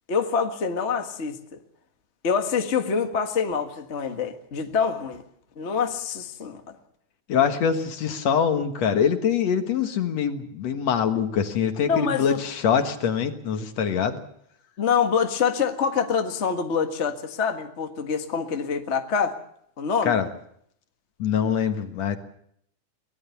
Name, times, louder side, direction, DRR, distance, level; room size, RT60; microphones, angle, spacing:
voice 1, 0.1-1.6 2.2-5.2 5.6-6.6 11.8-12.4 14.8-19.4 19.8-20.2, left 6 dB, 30° left, 5 dB, 1.3 m, -25 dB
voice 2, 7.3-14.2 20.1-20.3 21.2-22.2, left 7 dB, 65° left, 6 dB, 2.6 m, -24 dB
23.0 x 19.5 x 7.1 m, 0.69 s
omnidirectional pair, 3.4 m